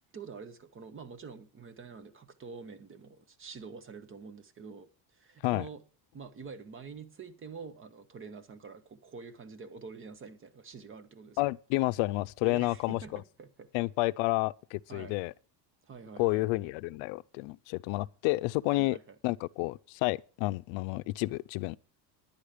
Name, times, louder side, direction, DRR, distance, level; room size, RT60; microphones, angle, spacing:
voice 1, 0.1-5.8 6.1-11.5 12.4-13.7 14.9-15.2 15.8-16.5 18.7-19.2, right 5 dB, 30° right, 0.9 m, -46 dB
voice 2, 11.4-13.2 13.7-15.3 16.2-19.0 19.2-21.8, left 21 dB, 85° left, 0.6 m, -30 dB
10.5 x 10.0 x 5.0 m
cardioid pair, 150°, 45 cm